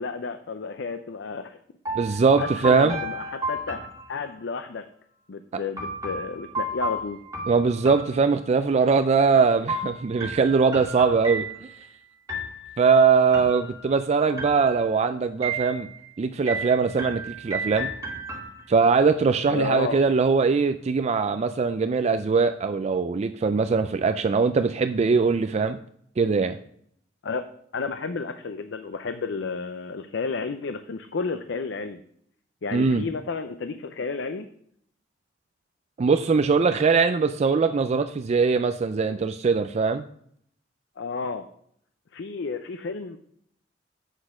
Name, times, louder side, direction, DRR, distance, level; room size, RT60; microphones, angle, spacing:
voice 1, 0.0-1.6 2.1-4.8 5.3-7.2 19.5-20.0 27.2-27.4 27.7-32.0 32.6-34.5 41.0-41.5 42.1-43.2, left 4 dB, 70° left, 9 dB, 0.5 m, -32 dB
sound 1, 1.8-4.6 5.8-8.8 9.7-11.9 12.3-12.9 13.3-14.0 14.4-15.0 15.4-16.1 16.5-18.9, right 2 dB, 20° right, 2.3 m, -33 dB
voice 2, 2.0-3.0 7.5-11.5 12.8-15.9 16.2-17.9 18.7-25.8 26.2-26.6 32.7-33.0 36.0-40.0, right 5 dB, 35° right, 9 dB, 0.3 m, -21 dB
8.1 x 6.3 x 4.8 m, 0.68 s
head